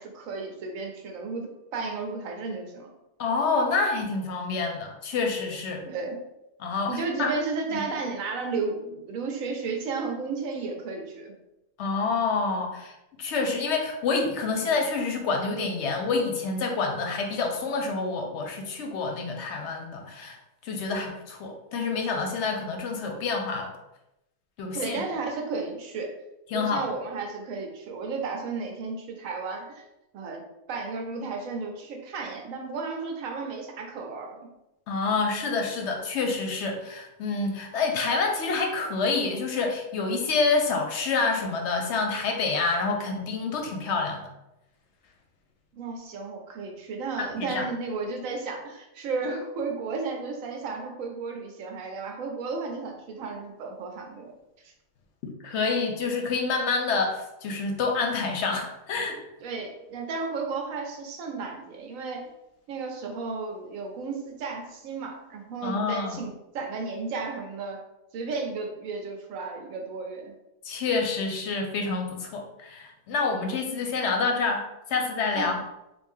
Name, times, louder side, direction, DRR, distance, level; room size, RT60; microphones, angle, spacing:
voice 1, 0.0-2.9 5.8-6.2 6.9-11.3 24.7-26.1 26.5-29.8 30.1-30.4 30.7-34.5 45.7-54.3 54.6-54.7 59.4-62.3 62.7-67.8 68.1-70.3 75.3-75.5, right 4 dB, 85° right, 3 dB, 1.1 m, -33 dB
voice 2, 3.2-5.9 6.6-7.3 7.7-7.8 11.8-12.9 13.2-20.4 20.6-23.7 24.6-25.0 26.5-26.9 34.9-44.3 47.2-47.7 55.2-59.2 65.6-66.2 70.6-74.6 74.9-75.6, left 4 dB, 65° left, 3 dB, 0.8 m, -27 dB
3.2 x 2.6 x 3.6 m, 0.90 s
omnidirectional pair, 1.4 m